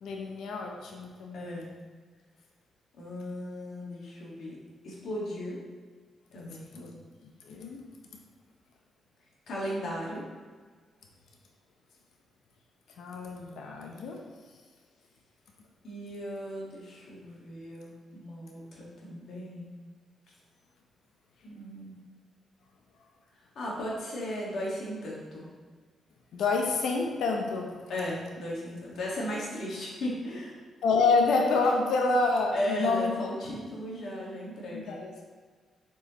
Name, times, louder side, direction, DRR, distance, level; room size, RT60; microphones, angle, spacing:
voice 1, 0.0-1.6 6.4-6.9 7.4-7.8 13.0-14.2 26.3-27.7 30.8-33.3 34.7-35.1, left 3 dB, 80° left, 1 dB, 0.7 m, -28 dB
voice 2, 1.3-1.7 3.0-4.6 4.8-5.6 6.3-6.8 9.5-10.2 15.8-19.7 21.4-22.0 23.6-25.5 27.9-30.6 32.5-35.0, equal, 65° left, -4 dB, 1.7 m, -36 dB
7.0 x 4.7 x 3.0 m, 1.5 s
wide cardioid pair, 150°, 0 cm